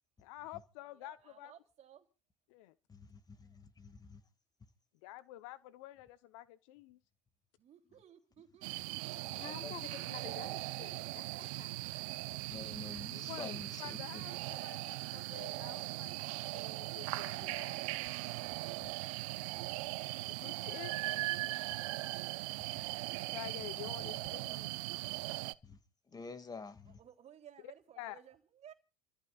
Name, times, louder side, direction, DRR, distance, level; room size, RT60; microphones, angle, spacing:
voice 1, 0.2-1.5 2.5-2.7 5.0-7.0 13.0-17.8 20.3-21.2 23.3-24.7 27.6-28.2, left 15 dB, 70° left, 1.0 m, -49 dB
voice 2, 0.9-2.1 7.6-9.4 26.8-28.7, right 9 dB, 40° right, 3.4 m, -59 dB
voice 3, 2.9-4.2 9.6-9.7 12.5-14.0 18.8-18.9 21.0-21.5 22.8-22.9 25.6-25.8 26.1-27.0, left 4 dB, 20° left, 2.3 m, -48 dB
sound 1, 8.6-25.5, right 21 dB, 70° right, 0.7 m, -39 dB
voice 4, 9.3-11.8, left 8 dB, 50° left, 3.4 m, -49 dB
29.0 x 14.5 x 2.5 m
hypercardioid pair, 95°, 17 cm